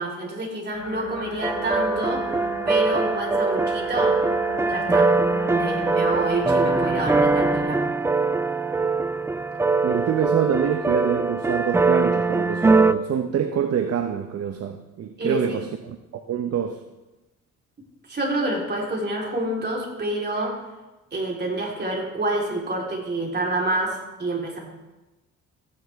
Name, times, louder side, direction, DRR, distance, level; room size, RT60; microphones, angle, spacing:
voice 1, 0.0-2.2 2.7-4.2 4.7-5.1 5.5-7.8 15.2-15.6 18.1-20.6 21.1-24.6, right 2 dB, 35° right, -3 dB, 3.8 m, -28 dB
sound 1, 0.7-7.6, left 3 dB, 50° left, 3.3 m, -35 dB
sound 2, 1.4-12.9, right 3 dB, 10° right, 0.3 m, -22 dB
voice 2, 9.8-16.0 16.3-16.8, right 8 dB, 55° right, 7 dB, 0.8 m, -26 dB
15.0 x 9.6 x 3.5 m, 1.1 s
cardioid pair, 90°, 30 cm